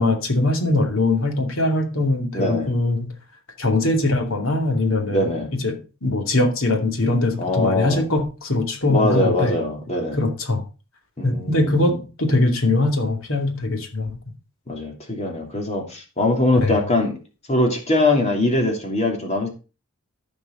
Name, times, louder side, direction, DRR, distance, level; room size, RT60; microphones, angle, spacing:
voice 1, 0.0-3.1 3.6-9.5 10.1-10.6 11.2-14.1 16.6-16.7, left 2 dB, 65° left, 4 dB, 2.6 m, -21 dB
voice 2, 2.3-2.7 5.1-5.5 7.4-8.0 8.9-10.2 11.2-12.0 14.7-17.2 17.5-19.5, left 2 dB, 30° left, 2 dB, 3.0 m, -22 dB
14.0 x 5.3 x 5.4 m, 0.33 s
head